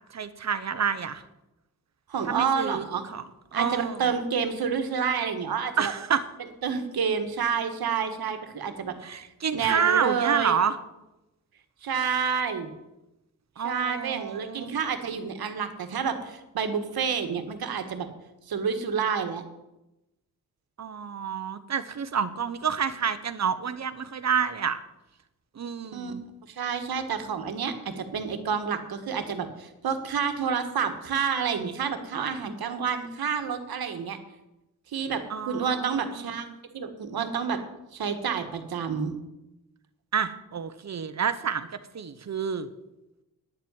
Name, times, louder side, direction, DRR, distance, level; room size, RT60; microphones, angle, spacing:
voice 1, 0.1-1.2 2.2-2.8 3.1-3.2 3.5-4.1 5.8-6.3 9.0-10.8 13.6-14.7 20.8-24.8 25.5-26.2 35.3-36.6 40.1-41.7 41.9-42.7, right 7 dB, 50° right, 12 dB, 1.0 m, -28 dB
voice 2, 2.1-3.1 3.5-5.9 6.6-8.9 9.5-10.6 11.8-12.7 13.6-18.1 18.5-19.4 25.9-26.1 26.5-34.2 34.9-36.5 36.7-37.6 37.9-39.1, right 6 dB, 80° right, 8 dB, 1.6 m, -29 dB
10.5 x 7.4 x 9.6 m, 0.95 s
wide cardioid pair, 110°, 36 cm